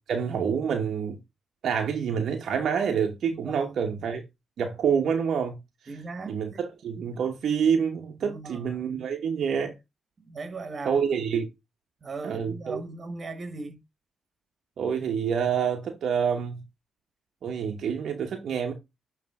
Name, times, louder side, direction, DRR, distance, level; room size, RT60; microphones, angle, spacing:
voice 1, 0.1-1.2 1.6-4.2 4.6-5.6 6.3-9.7 10.8-11.5 12.2-12.8 14.8-16.6 17.4-18.7, right 7 dB, 65° right, 1.0 m, -27 dB
voice 2, 3.3-3.7 5.9-6.7 8.2-8.9 10.2-11.1 12.0-13.8, right 3 dB, 45° right, 1.4 m, -38 dB
9.4 x 3.2 x 3.6 m
supercardioid pair, 50°, 0 cm